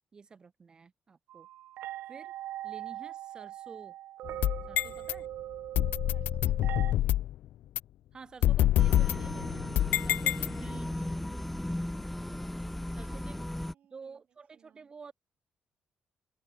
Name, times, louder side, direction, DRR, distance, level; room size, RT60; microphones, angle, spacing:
voice 1, 0.1-1.5 2.1-2.3 2.6-4.0 4.7-5.3 8.1-9.7 10.0-11.1 13.0-13.5 13.9-15.1, right 5 dB, 25° right, 0.9 m, -50 dB
sound 1, 1.3-6.9, right 14 dB, 90° right, 0.5 m, -41 dB
sound 2, 4.3-5.1 5.7-7.3 7.8-7.9 8.4-10.9, left 13 dB, 75° left, 0.3 m, -27 dB
voice 2, 6.1-7.3 12.9-14.2 14.5-14.9, right 10 dB, 55° right, 5.8 m, -64 dB
sound 3, 8.8-13.7, left 1 dB, 5° left, 0.4 m, -36 dB
open air
cardioid pair, 175°, 3 cm